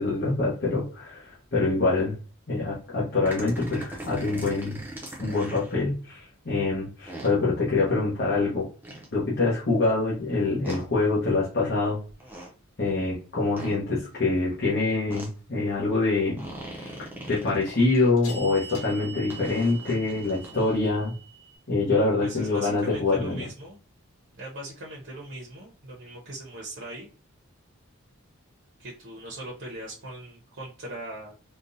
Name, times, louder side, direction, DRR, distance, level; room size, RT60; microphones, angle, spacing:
voice 1, 0.0-2.2 2.5-4.8 5.2-8.7 9.1-12.0 12.8-21.1 21.7-23.5, left 3 dB, 50° left, -7 dB, 1.0 m, -25 dB
sound 1, 3.2-5.7 7.1-7.3 8.8-9.1 10.6-10.8 12.1-12.5 13.6-13.8 15.1-15.3 16.4-18.1 19.3-20.8, right 1 dB, 10° right, 0.7 m, -40 dB
sound 2, 7.2-7.3 17.6-21.6, right 5 dB, 85° left, 1.1 m, -43 dB
voice 2, 22.2-23.8 24.3-27.1 28.8-31.3, right 1 dB, 60° right, -3 dB, 0.8 m, -40 dB
3.7 x 2.3 x 2.6 m, 0.38 s
head